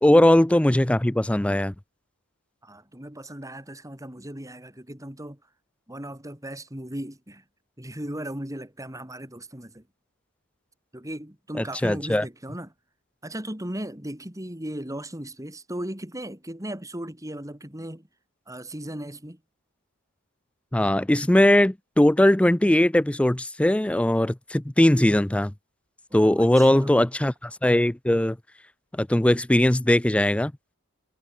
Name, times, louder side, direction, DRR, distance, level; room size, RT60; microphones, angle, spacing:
voice 1, 0.0-1.7 11.6-12.2 20.7-25.5 26.1-28.4 28.9-30.5, left 1 dB, 5° left, 0.4 m, -20 dB
voice 2, 2.6-5.4 5.9-7.4 7.8-9.8 10.9-12.7 13.2-18.1 18.5-19.4 26.1-26.9, right 1 dB, 15° right, 3.6 m, -37 dB
head